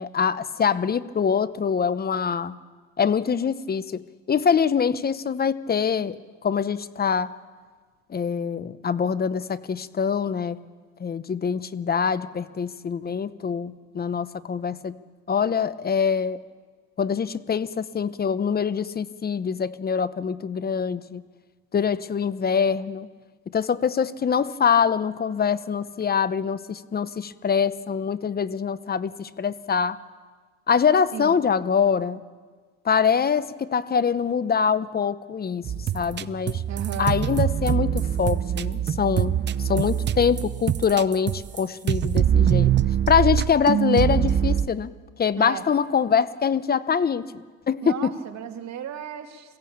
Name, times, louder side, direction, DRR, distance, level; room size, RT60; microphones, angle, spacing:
voice 1, 0.0-2.6 3.0-4.0 4.3-7.3 8.1-10.6 11.0-15.0 15.3-16.4 17.0-21.2 21.7-23.1 23.5-30.0 30.7-32.2 32.8-36.6 37.0-42.7 43.1-44.9 45.2-48.1, left 6 dB, 25° left, 15 dB, 0.9 m, -24 dB
sound 1, 35.6-41.6 41.9-44.7, right 9 dB, 30° right, 0.6 m, -23 dB
voice 2, 36.7-37.2 45.4-45.6 47.8-49.6, right 9 dB, 50° right, 5 dB, 2.3 m, -35 dB
22.5 x 15.5 x 8.7 m, 1.5 s
supercardioid pair, 95°, 34 cm